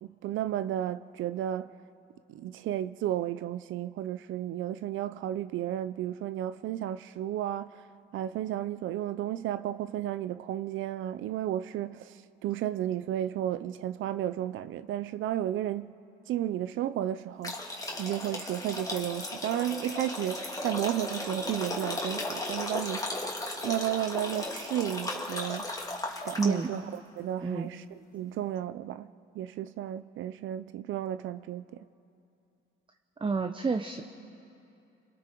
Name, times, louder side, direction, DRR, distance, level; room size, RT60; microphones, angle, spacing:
voice 1, 0.0-1.7 2.3-7.8 8.1-15.9 16.3-17.7 18.0-23.2 23.6-25.7 26.2-27.8 28.1-31.9, right 12 dB, 80° right, 0.6 m, -33 dB
sound 1, 17.4-26.8, left 2 dB, 15° left, 2.5 m, -36 dB
voice 2, 26.4-26.7 27.4-27.7 33.2-34.0, right 4 dB, 25° right, 0.8 m, -29 dB
28.5 x 22.0 x 4.6 m
cardioid pair, 90°, 20 cm